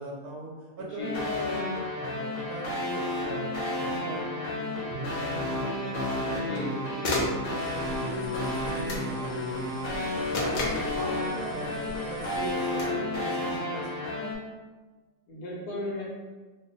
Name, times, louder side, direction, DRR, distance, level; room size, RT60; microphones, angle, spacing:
voice 1, 0.0-10.7 10.9-14.4, right 3 dB, 75° right, -2 dB, 1.1 m, -40 dB
voice 2, 0.8-1.2 6.3-6.7 10.5-11.2 15.3-16.0, left 2 dB, 85° left, -4 dB, 1.5 m, -36 dB
sound 1, 1.0-14.3, left 2 dB, 45° left, 0.8 m, -32 dB
sound 2, 6.2-6.7 7.0-7.4 8.9-9.1 10.3-10.9 12.7-13.0, left 2 dB, 65° left, 1.1 m, -31 dB
sound 3, 7.5-12.5, equal, 50° right, 0.3 m, -44 dB
3.3 x 2.0 x 3.8 m, 1.3 s
omnidirectional pair, 1.7 m